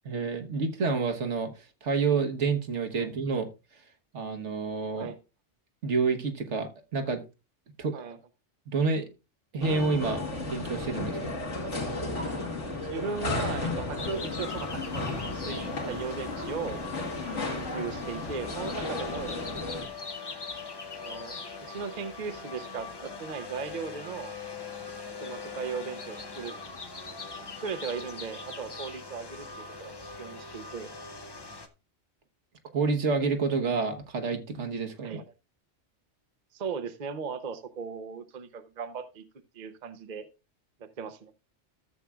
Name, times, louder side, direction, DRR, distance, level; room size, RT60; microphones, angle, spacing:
voice 1, 0.0-1.5 1.8-3.5 4.1-5.1 5.8-7.2 7.8-8.0 8.7-9.1 9.5-11.4 32.7-35.2, right 4 dB, 70° right, 7 dB, 1.5 m, -28 dB
sound 1, 9.6-19.9, left 2 dB, 75° left, 2.4 m, -34 dB
voice 2, 12.8-16.9 17.3-19.4 21.0-24.3 25.2-26.5 27.6-30.9 35.0-35.2 36.5-39.2 39.5-40.3 40.8-41.3, right 6 dB, 45° right, 9 dB, 0.8 m, -37 dB
sound 2, 14.0-31.7, left 4 dB, 25° left, 0.6 m, -41 dB
14.0 x 7.3 x 2.3 m, 0.28 s
omnidirectional pair, 1.2 m